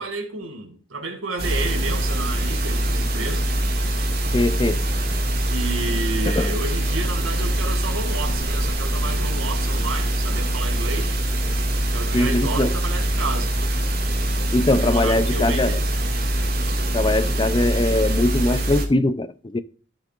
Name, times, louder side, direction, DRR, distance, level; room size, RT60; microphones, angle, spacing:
voice 1, 0.0-3.6 5.5-11.2 11.9-13.5 14.8-15.9, right 3 dB, 90° right, 2.1 m, -31 dB
sound 1, 1.4-18.9, right 1 dB, 50° right, 2.0 m, -23 dB
voice 2, 4.3-4.8 6.4-6.5 12.1-12.7 14.5-15.8 16.9-19.6, left 1 dB, 25° left, 0.5 m, -21 dB
14.5 x 6.5 x 2.5 m
head